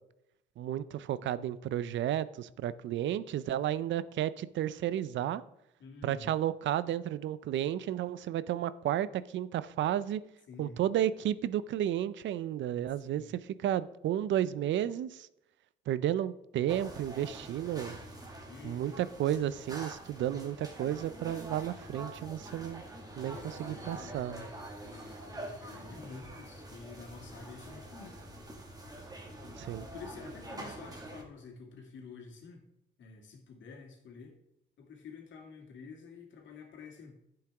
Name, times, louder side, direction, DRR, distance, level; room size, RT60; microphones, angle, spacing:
voice 1, 0.6-5.4 6.0-10.2 10.6-15.3 15.9-18.0 18.6-22.8 23.2-24.4 29.6-29.9, right 11 dB, 70° right, 17 dB, 0.5 m, -32 dB
voice 2, 5.8-6.4 10.5-10.8 13.0-13.4 18.5-19.1 23.3-24.3 24.8-28.2 29.8-32.6 33.0-34.4 34.8-37.2, left 4 dB, 70° left, 2 dB, 2.2 m, -49 dB
sound 1, 16.7-31.2, right 1 dB, 20° right, 1.8 m, -46 dB
10.5 x 7.8 x 3.5 m, 0.83 s
cardioid pair, 90°, 20 cm